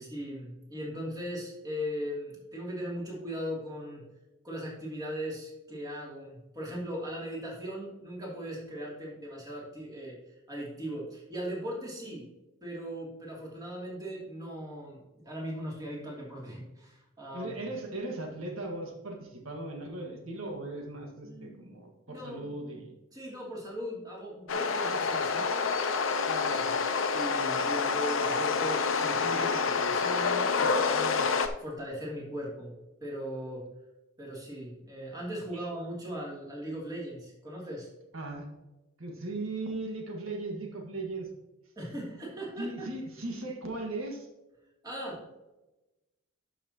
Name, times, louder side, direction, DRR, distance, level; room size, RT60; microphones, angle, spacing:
voice 1, 0.0-4.0 4.4-10.2 10.5-12.3 12.6-17.5 21.2-21.8 22.1-22.5 23.1-25.7 26.2-26.6 27.1-32.7 33.0-33.7 34.2-37.9 41.8-42.9 44.8-45.2, equal, 20° right, -4 dB, 2.9 m, -39 dB
voice 2, 17.3-22.9 26.4-26.7 38.1-38.5 39.0-41.3 42.6-44.3, right 2 dB, 90° right, 1 dB, 1.7 m, -38 dB
sound 1, 24.5-31.5, left 5 dB, 75° left, 0.8 m, -28 dB
11.5 x 6.1 x 2.9 m, 1.0 s
head